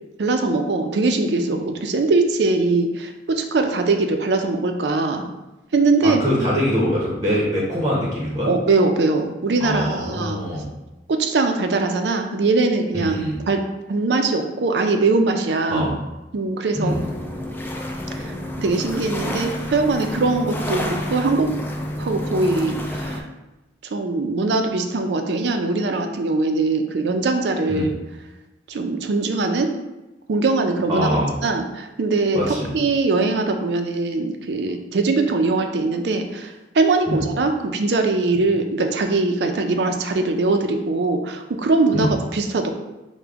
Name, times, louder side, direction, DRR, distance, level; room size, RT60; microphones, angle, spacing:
voice 1, 0.2-5.2 5.7-6.2 8.4-10.4 11.1-13.6 13.9-15.9 16.3-17.0 18.2-18.3 18.6-21.5 22.0-23.3 23.9-27.9 28.7-29.7 30.3-31.1 31.4-42.7, right 3 dB, 70° right, 5 dB, 0.5 m, -21 dB
voice 2, 6.0-8.5 9.6-10.7 12.9-13.4 15.7-15.9 16.7-17.0 27.7-27.9 30.9-31.3 32.3-32.7 37.1-37.2 41.9-42.1, equal, 20° right, -5 dB, 0.8 m, -23 dB
sound 1, 16.9-23.2, left 1 dB, 10° left, 0.3 m, -29 dB
5.0 x 2.2 x 3.4 m, 1.0 s
head